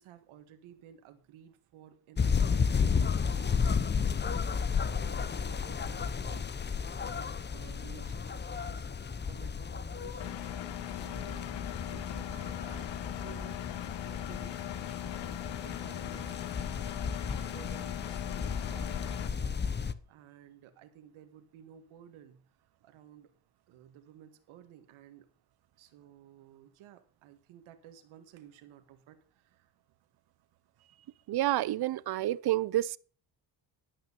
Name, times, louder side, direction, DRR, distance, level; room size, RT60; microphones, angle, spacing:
voice 1, 0.0-2.5 3.0-6.5 7.0-10.4 10.8-11.5 11.8-17.0 17.2-22.4 22.8-23.3 23.7-25.3 25.8-29.7 30.8-31.3, right 10 dB, 85° right, 1.7 m, -55 dB
sound 1, 2.2-19.9, left 6 dB, 20° left, 0.7 m, -33 dB
Engine, 10.2-19.3, left 14 dB, 65° left, 0.9 m, -40 dB
voice 2, 31.3-33.0, right 14 dB, 55° right, 0.6 m, -29 dB
12.0 x 5.8 x 6.7 m
cardioid pair, 90°, 47 cm